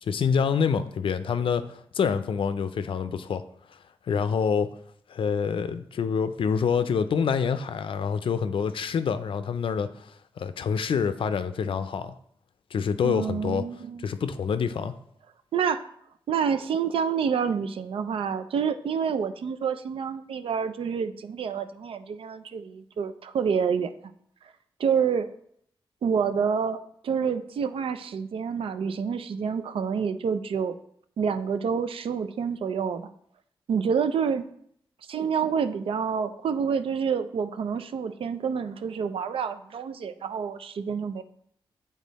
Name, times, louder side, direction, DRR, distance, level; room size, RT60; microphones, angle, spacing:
voice 1, 0.0-3.4 4.1-4.7 5.1-10.1 10.4-12.2 12.7-13.7 14.0-14.9, left 6 dB, 75° left, 11 dB, 0.4 m, -26 dB
voice 2, 13.0-14.0 15.5-15.9 16.3-23.9 24.8-25.3 26.0-30.8 31.2-33.1 33.7-34.4 35.1-41.2, right 6 dB, 85° right, 10 dB, 0.4 m, -28 dB
7.4 x 3.6 x 4.0 m, 0.68 s
wide cardioid pair, 80°, 9 cm